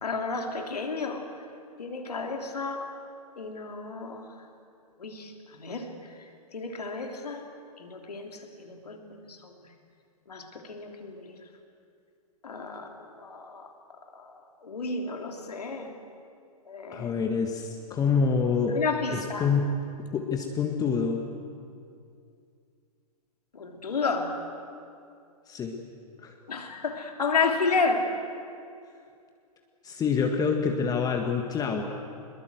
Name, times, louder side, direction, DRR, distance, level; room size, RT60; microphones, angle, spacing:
voice 1, 0.0-1.2 1.8-2.9 3.3-4.3 5.0-5.3 5.6-5.9 6.5-7.4 7.8-9.0 9.3-9.5 10.3-11.3 12.4-12.9 13.1-13.7 14.1-14.3 14.6-15.9 16.7-17.1 18.7-19.5 23.5-24.4 26.5-28.1, left 4 dB, 80° left, 3 dB, 3.4 m, -31 dB
voice 2, 16.9-18.8 19.1-19.7 20.1-21.2 25.5-25.7 26.2-26.4 29.8-31.8, left 5 dB, 20° left, 3 dB, 1.8 m, -26 dB
22.5 x 21.5 x 8.1 m, 2.4 s
hypercardioid pair, 115°, 20 cm